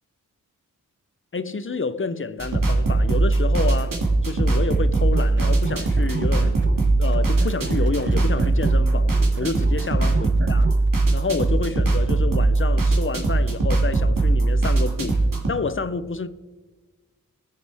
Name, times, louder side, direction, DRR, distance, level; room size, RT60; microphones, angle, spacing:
voice 1, 1.3-4.0 4.3-6.6 7.0-10.8 11.1-15.2 15.5-16.3, left 4 dB, 35° left, 0.7 m, -29 dB
sound 1, 2.4-15.5, right 2 dB, 70° right, 2.2 m, -20 dB
sound 2, 5.1-6.8 7.1-10.9, right 4 dB, 35° right, 0.9 m, -34 dB
18.5 x 7.1 x 3.5 m
cardioid pair, 45°, 35 cm